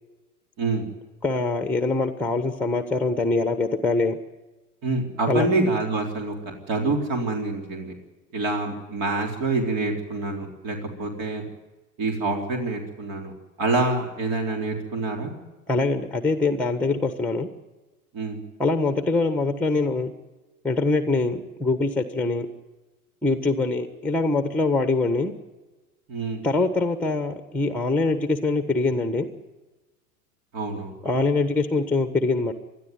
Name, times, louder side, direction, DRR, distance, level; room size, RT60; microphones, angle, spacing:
voice 1, 0.6-0.9 4.8-6.3 6.7-7.9 8.3-11.5 12.0-13.3 13.6-15.3 18.1-18.4 26.1-26.5 30.5-30.9, right 3 dB, 45° right, 2 dB, 4.0 m, -26 dB
voice 2, 1.2-4.2 5.3-5.5 15.7-17.5 18.6-20.1 20.6-22.5 23.2-25.3 26.4-29.3 31.0-32.5, left 3 dB, 5° left, 9 dB, 1.4 m, -23 dB
21.0 x 13.0 x 9.5 m, 1.2 s
hypercardioid pair, 90°, 45 cm